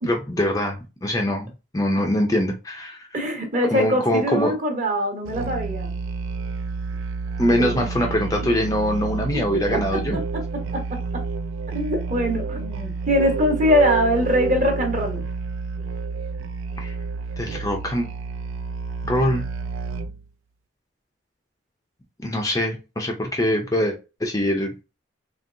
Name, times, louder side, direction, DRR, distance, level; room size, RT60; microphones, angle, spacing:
voice 1, 0.1-3.1 3.7-4.5 7.4-10.2 16.8-16.9 17.4-18.1 19.0-19.5 22.2-24.0 24.2-24.8, equal, 15° left, 0.5 m, -23 dB
voice 2, 3.1-5.9 7.4-7.9 9.7-11.2 11.7-15.2, equal, 40° right, 1.2 m, -23 dB
Musical instrument, 5.2-20.3, right 4 dB, 80° right, 0.4 m, -29 dB
4.4 x 3.1 x 2.6 m
head